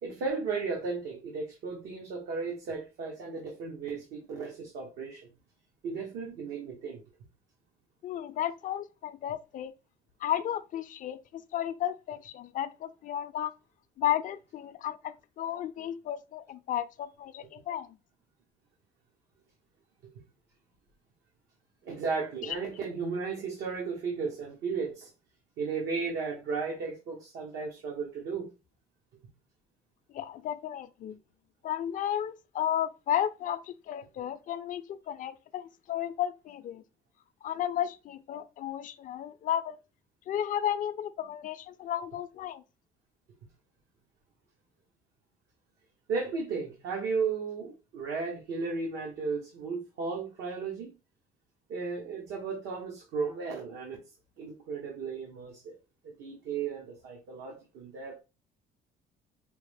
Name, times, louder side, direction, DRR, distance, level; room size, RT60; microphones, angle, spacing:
voice 1, 0.0-5.3 5.8-7.0 21.8-25.1 25.6-28.5 46.1-50.9 51.7-54.0 54.4-55.8 56.0-58.2, right 4 dB, 80° right, 1.1 m, -35 dB
voice 2, 8.0-9.7 10.2-13.5 14.0-17.9 30.1-31.2 31.6-36.8 37.4-39.8 40.3-42.6, left 11 dB, 50° left, 0.4 m, -33 dB
5.0 x 2.0 x 3.3 m
cardioid pair, 110°, 17 cm